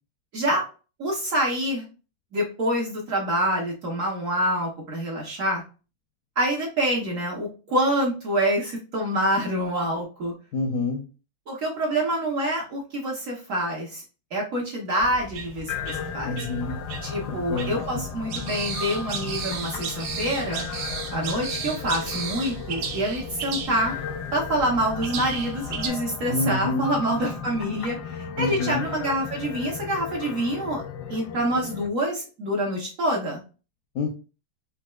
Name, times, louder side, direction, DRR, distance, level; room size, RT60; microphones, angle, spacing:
voice 1, 0.3-0.6 1.0-1.8 2.3-5.6 6.4-10.3 11.5-14.0 14.3-16.4 17.0-20.6 21.1-23.9 24.3-30.8 31.1-33.4, right 1 dB, 55° right, -1 dB, 1.0 m, -26 dB
voice 2, 10.5-11.0 16.2-16.8 17.3-18.0 26.3-26.9 28.4-28.9 33.9-34.1, left 2 dB, 70° left, 1 dB, 0.8 m, -27 dB
sound 1, 15.0-25.9, right 5 dB, 75° right, 1.2 m, -35 dB
sound 2, 15.7-31.9, left 7 dB, 85° left, 1.4 m, -35 dB
4.1 x 2.3 x 2.2 m, 0.33 s
omnidirectional pair, 2.0 m